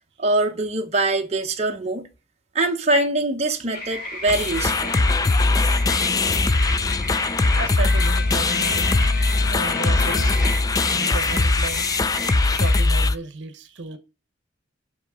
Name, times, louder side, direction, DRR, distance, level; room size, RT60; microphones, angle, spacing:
voice 1, 0.2-2.1 2.5-4.9, right 2 dB, 35° right, 0.9 m, -23 dB
sound 1, 3.7-12.8, left 2 dB, 50° left, 2.8 m, -34 dB
sound 2, 4.3-13.2, left 3 dB, 20° left, 0.3 m, -20 dB
voice 2, 7.5-10.6 10.9-11.9 12.2-14.0, right 3 dB, 70° right, 0.9 m, -34 dB
Bowed string instrument, 7.8-11.1, left 5 dB, 75° left, 0.7 m, -37 dB
5.9 x 5.6 x 4.9 m
head